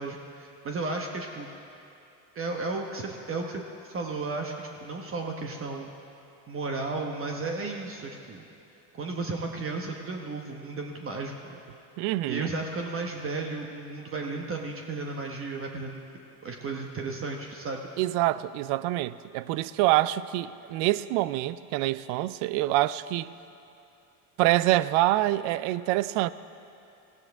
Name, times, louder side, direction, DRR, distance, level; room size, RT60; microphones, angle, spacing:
voice 1, 0.0-1.5 2.3-5.9 6.5-8.4 8.9-11.6 12.3-16.0 16.4-17.9, right 3 dB, 30° right, 2 dB, 1.1 m, -34 dB
voice 2, 12.0-12.5 18.0-23.3 24.4-26.3, right 16 dB, 65° right, 17 dB, 0.6 m, -26 dB
18.0 x 15.5 x 3.5 m, 2.7 s
supercardioid pair, 115°, 45 cm